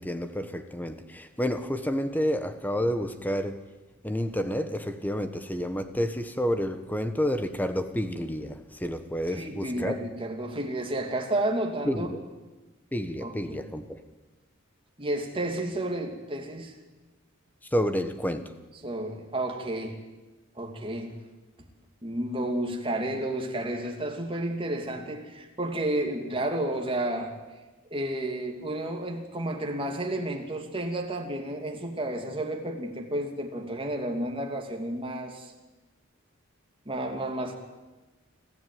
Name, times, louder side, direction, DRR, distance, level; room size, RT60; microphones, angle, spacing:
voice 1, 0.0-3.6 4.0-10.0 11.8-12.2 12.9-14.0 17.6-18.4, equal, 10° left, 9 dB, 1.3 m, -29 dB
voice 2, 9.3-12.1 13.2-13.6 15.0-16.7 18.8-20.0 20.6-21.1 22.0-27.3 27.9-35.5 36.8-37.5, right 1 dB, 25° right, 3 dB, 2.9 m, -31 dB
26.0 x 14.5 x 9.5 m, 1.2 s
head